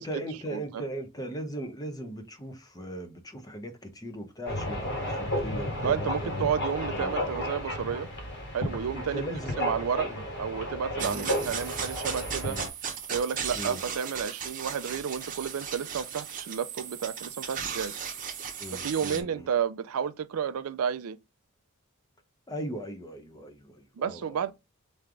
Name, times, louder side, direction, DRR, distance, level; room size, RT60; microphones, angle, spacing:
voice 1, 0.0-6.4 6.9-7.4 8.9-10.2 11.0-11.3 12.5-12.7 13.5-13.8 18.6-19.5 22.5-24.5, right 1 dB, 15° left, 0.7 m, -38 dB
voice 2, 0.5-0.8 5.8-8.1 8.5-9.2 9.6-10.1 10.3-12.6 13.1-18.0 18.7-21.2 24.0-24.5, right 7 dB, 75° right, 0.4 m, -31 dB
sound 1, 4.5-12.7, left 1 dB, 50° left, 1.6 m, -33 dB
sound 2, 11.0-19.2, right 7 dB, 35° right, 0.8 m, -36 dB
3.4 x 3.2 x 3.7 m
head